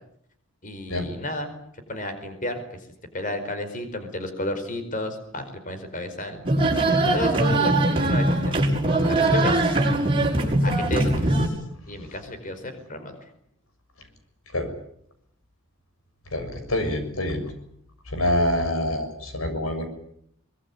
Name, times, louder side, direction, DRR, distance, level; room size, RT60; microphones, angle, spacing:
voice 1, 0.6-1.5 1.9-2.5 3.1-6.4 7.1-8.6 9.0-9.7 10.6-11.5 11.9-13.2, left 1 dB, 40° left, 8 dB, 4.9 m, -32 dB
sound 1, 6.4-11.5, right 2 dB, 25° right, 6.4 m, -21 dB
voice 2, 16.3-17.4 18.1-19.9, left 1 dB, 80° left, 8 dB, 6.7 m, -26 dB
24.0 x 22.0 x 9.7 m, 0.70 s
head